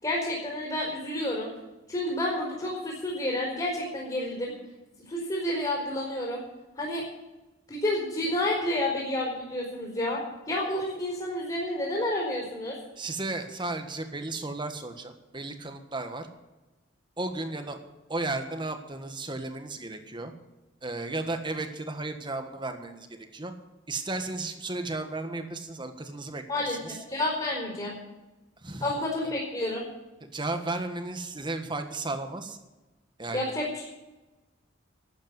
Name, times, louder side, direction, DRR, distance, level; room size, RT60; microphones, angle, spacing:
voice 1, 0.0-1.5 1.9-4.5 5.1-6.4 6.8-7.0 7.7-12.8 26.5-27.9 28.8-29.9 33.3-33.9, left 1 dB, 25° left, -3 dB, 4.3 m, -30 dB
voice 2, 13.0-16.3 17.2-17.8 18.1-20.3 20.8-23.1 23.3-23.5 23.9-27.0 28.6-28.9 29.2-29.3 30.2-32.6 33.2-33.5, right 2 dB, 25° right, 6 dB, 1.4 m, -34 dB
12.5 x 8.8 x 9.5 m, 1.1 s
head